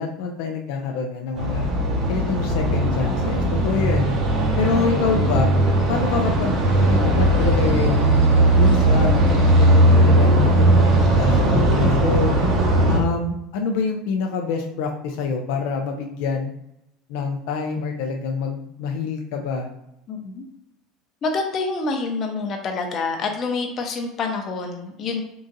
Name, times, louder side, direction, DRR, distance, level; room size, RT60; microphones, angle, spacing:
voice 1, 0.0-1.7 2.1-4.1 4.6-5.5 5.9-9.1 9.6-12.4 12.9-16.5 17.1-19.7, left 5 dB, 75° left, 2 dB, 0.5 m, -26 dB
sound 1, 1.4-13.0, right 1 dB, 45° right, 0.9 m, -18 dB
voice 2, 20.1-20.4 21.2-25.2, left 4 dB, 40° left, 3 dB, 0.7 m, -27 dB
3.8 x 2.5 x 3.9 m, 0.83 s
supercardioid pair, 125°, 0 cm